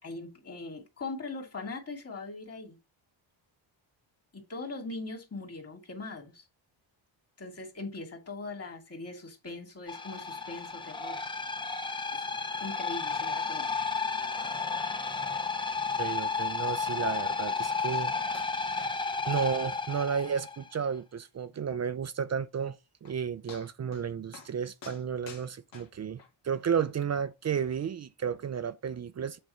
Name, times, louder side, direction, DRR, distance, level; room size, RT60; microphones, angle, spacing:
voice 1, 0.0-2.8 4.3-6.4 7.4-11.2 12.6-13.7, left 3 dB, 30° left, 2.4 m, -40 dB
sound 1, 9.9-20.7, left 4 dB, 10° left, 0.6 m, -32 dB
voice 2, 16.0-18.1 18.4-18.7 19.3-29.4, right 7 dB, 35° right, 0.5 m, -33 dB
sound 2, 17.9-18.1 18.3-18.5 18.8-19.0 19.2-19.3 19.8-19.9 20.3-20.4 20.8-20.9 22.6-22.7 23.1-23.2 23.5-24.1 24.3-24.5 24.8-26.3 27.0-27.1, left 6 dB, 65° left, 2.1 m, -49 dB
7.8 x 3.6 x 5.5 m
cardioid pair, 110°, 47 cm